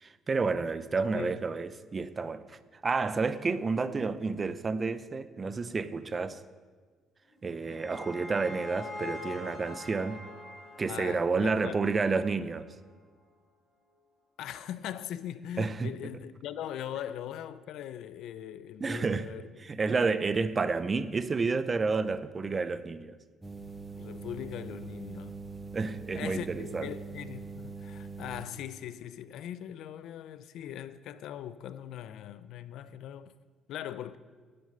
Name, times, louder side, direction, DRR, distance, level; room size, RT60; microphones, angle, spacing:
voice 1, 0.0-6.4 7.4-10.2 10.8-12.7 15.6-15.9 18.8-19.3 19.6-23.2 25.7-26.9, right 4 dB, 30° right, 0.6 m, -30 dB
sound 1, 7.3-12.5, left 3 dB, 15° left, 5.3 m, -44 dB
voice 2, 10.9-12.0 14.4-19.5 19.9-20.0 24.0-25.4 26.1-33.3 33.7-34.2, left 10 dB, 75° left, 0.6 m, -40 dB
sound 2, 23.4-28.5, right 4 dB, 10° right, 1.1 m, -43 dB
12.0 x 7.9 x 9.4 m
cardioid pair, 110°, 0 cm